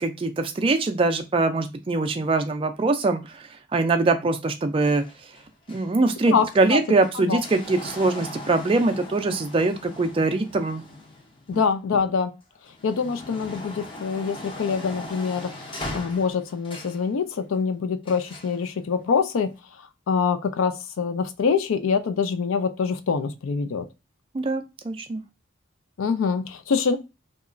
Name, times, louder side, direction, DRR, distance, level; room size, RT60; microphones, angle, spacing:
voice 1, 0.0-5.0 5.7-10.8 11.5-11.6 24.3-25.2, right 3 dB, 25° right, 0.3 m, -23 dB
sound 1, 4.8-12.0 12.5-17.1 18.0-18.6 19.5-19.6, left 1 dB, 25° left, 0.5 m, -40 dB
voice 2, 11.5-12.3 12.8-15.5 15.9-19.5 20.1-23.9 26.0-27.0, left 5 dB, 85° left, 0.4 m, -25 dB
2.8 x 2.3 x 2.4 m
head